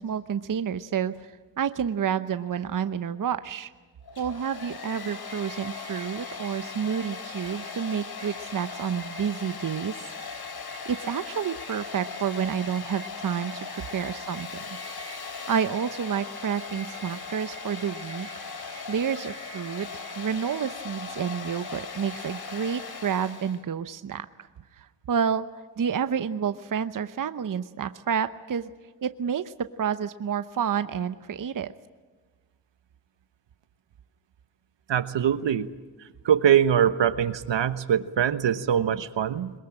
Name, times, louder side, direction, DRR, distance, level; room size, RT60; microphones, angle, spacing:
voice 1, 0.0-3.7 4.2-9.9 10.9-14.6 15.2-24.5 24.8-25.5 25.8-28.7 29.0-31.7, right 7 dB, 45° right, 11 dB, 0.9 m, -29 dB
Domestic sounds home sounds, 4.0-23.6, left 4 dB, 55° left, 3.0 m, -38 dB
voice 2, 34.9-35.7 36.2-39.5, right 9 dB, 70° right, 12 dB, 1.2 m, -23 dB
22.5 x 21.0 x 8.9 m, 1.4 s
cardioid pair, 75°, 45 cm